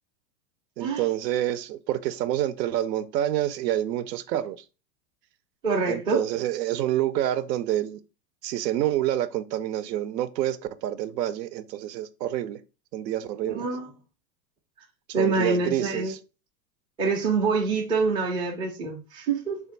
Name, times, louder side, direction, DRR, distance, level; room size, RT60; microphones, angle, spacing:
voice 1, 0.8-4.6 5.9-8.0 8.4-12.6 12.9-13.7 15.2-16.2, right 12 dB, 80° right, 0.6 m, -27 dB
voice 2, 5.6-6.2 13.4-13.9 15.1-16.1 17.0-19.6, right 4 dB, 10° right, 0.4 m, -26 dB
3.4 x 2.6 x 3.8 m
hypercardioid pair, 125°, 50 cm